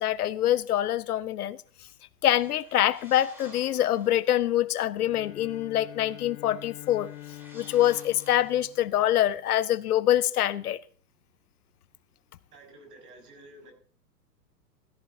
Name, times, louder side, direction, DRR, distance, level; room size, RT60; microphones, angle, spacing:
voice 1, 0.0-1.6 2.2-7.1 7.5-10.8, left 12 dB, 65° left, 0.8 m, -25 dB
sound 1, 2.3-4.4 6.7-9.1, equal, 5° right, 3.8 m, -53 dB
Bowed string instrument, 4.9-9.5, left 15 dB, 45° left, 1.4 m, -46 dB
voice 2, 12.5-13.7, right 2 dB, 65° right, 5.9 m, -50 dB
16.5 x 14.0 x 2.7 m
hypercardioid pair, 115°, 50 cm